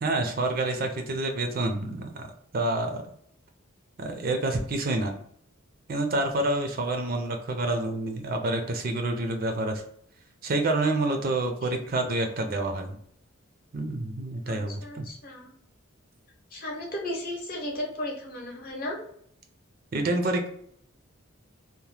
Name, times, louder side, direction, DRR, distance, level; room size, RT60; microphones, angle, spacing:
voice 1, 0.0-2.3 2.5-3.0 4.0-5.2 5.9-9.8 10.4-13.0 13.7-15.1 19.9-20.5, right 2 dB, 45° right, 4 dB, 0.4 m, -28 dB
voice 2, 14.5-15.5 16.5-19.0, left 1 dB, 40° left, -1 dB, 0.8 m, -35 dB
2.8 x 2.0 x 3.1 m, 0.66 s
head